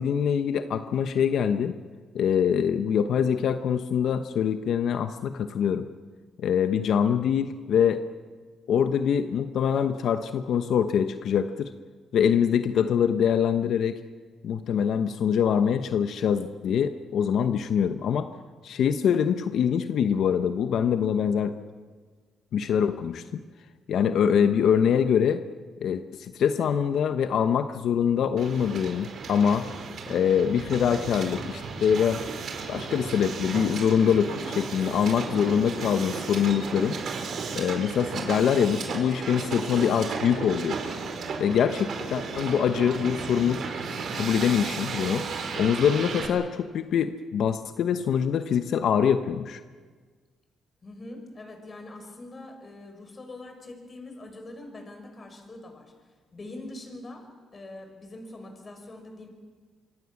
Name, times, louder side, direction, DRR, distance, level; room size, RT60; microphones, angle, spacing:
voice 1, 0.0-1.8 2.1-5.9 6.4-8.0 8.7-11.7 12.1-14.0 14.4-18.3 18.6-21.5 22.5-23.2 23.9-25.4 25.8-29.7 30.1-32.2 32.7-37.0 37.5-40.8 41.4-43.6 44.1-45.3 45.6-49.6, left 8 dB, 70° left, 9 dB, 1.0 m, -24 dB
Hiss, 28.4-46.3, right 4 dB, 60° right, 4.5 m, -34 dB
voice 2, 50.8-55.9 56.3-59.3, left 2 dB, 35° left, 4 dB, 6.2 m, -43 dB
25.5 x 24.0 x 7.3 m, 1.5 s
cardioid pair, 90°, 0 cm